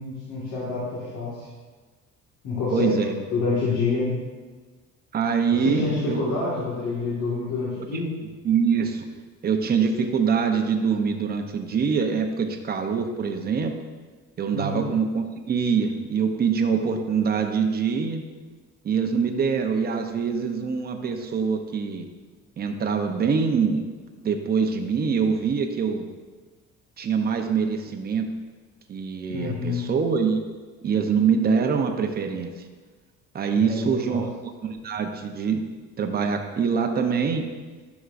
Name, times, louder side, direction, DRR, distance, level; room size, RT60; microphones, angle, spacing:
voice 1, 0.0-1.5 2.4-4.2 5.5-8.1 14.5-14.8 29.3-29.8 33.5-34.2, left 3 dB, 65° left, -6 dB, 2.0 m, -27 dB
voice 2, 2.7-3.1 5.1-6.4 8.4-9.1 9.4-13.7 14.4-18.2 18.8-22.1 22.6-23.9 24.2-26.1 27.0-28.3 28.9-30.4 30.8-32.5 33.3-34.3 34.6-35.7 36.0-37.5, right 6 dB, 30° right, 4 dB, 0.8 m, -24 dB
11.0 x 6.2 x 2.6 m, 1.4 s
cardioid pair, 130°, 30 cm